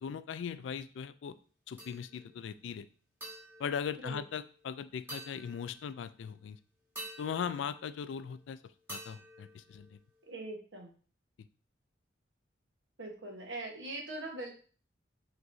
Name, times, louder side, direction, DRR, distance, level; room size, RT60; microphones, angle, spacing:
voice 1, 0.0-1.4 1.7-2.9 3.6-6.6 7.2-8.6 8.9-10.0, left 7 dB, 75° left, 13 dB, 0.3 m, -39 dB
sound 1, 1.8-2.4 3.2-4.6 5.1-6.1 7.0-8.4 8.9-10.3, right 1 dB, 10° right, 1.6 m, -49 dB
voice 2, 10.3-10.9 13.0-14.5, right 2 dB, 75° right, 0 dB, 1.1 m, -41 dB
6.1 x 3.0 x 2.6 m, 0.40 s
head